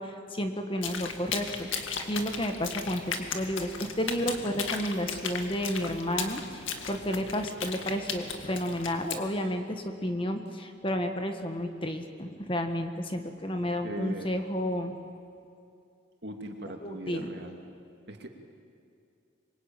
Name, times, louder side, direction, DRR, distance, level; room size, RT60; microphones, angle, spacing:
voice 1, 0.0-1.7 2.1-14.9 16.8-17.3, equal, 25° left, 6 dB, 1.5 m, -31 dB
sound 1, 0.8-9.2, left 5 dB, 75° left, 2.1 m, -36 dB
voice 2, 13.8-14.3 16.2-17.5 18.1-18.3, right 1 dB, 55° right, 3 dB, 2.6 m, -39 dB
26.0 x 23.0 x 9.0 m, 2.5 s
head